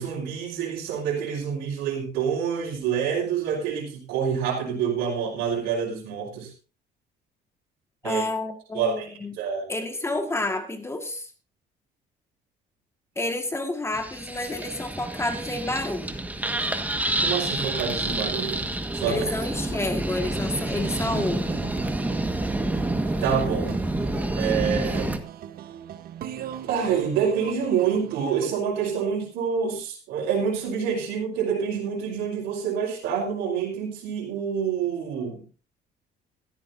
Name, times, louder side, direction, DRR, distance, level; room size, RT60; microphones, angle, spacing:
voice 1, 0.0-6.5 8.0-8.2 8.7-9.7 17.2-18.6 18.9-19.3 19.7-19.8 23.2-23.8 24.3-25.1 26.6-35.4, right 7 dB, 90° right, -4 dB, 4.1 m, -27 dB
voice 2, 8.0-9.3 9.7-11.3 13.2-16.2 19.1-21.7, left 2 dB, 15° left, 5 dB, 1.8 m, -29 dB
sound 1, 13.9-25.2, right 1 dB, 10° right, 1.6 m, -28 dB
sound 2, 20.5-28.5, right 10 dB, 65° right, 1.1 m, -39 dB
15.5 x 14.0 x 2.7 m, 0.36 s
cardioid pair, 110°, 17 cm